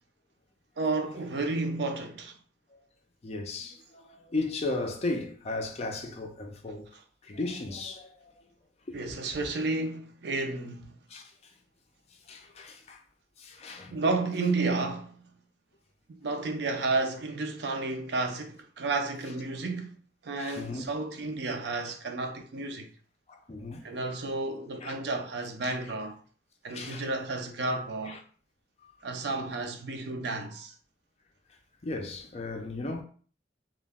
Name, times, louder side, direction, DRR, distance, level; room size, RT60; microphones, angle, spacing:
voice 1, 0.8-2.4 6.9-7.0 8.9-11.0 13.9-15.3 16.1-20.0 20.2-22.9 23.8-26.2 26.6-28.2 29.0-30.7, right 3 dB, 65° right, 0.4 m, -32 dB
voice 2, 3.2-6.9 7.2-8.4 8.9-9.0 11.1-11.3 12.3-13.0 13.4-14.0 20.4-20.9 23.3-23.9 24.8-24.9 25.6-25.7 26.7-27.1 28.1-28.2 31.8-33.0, left 2 dB, 35° left, 0.4 m, -35 dB
2.3 x 2.1 x 3.3 m
head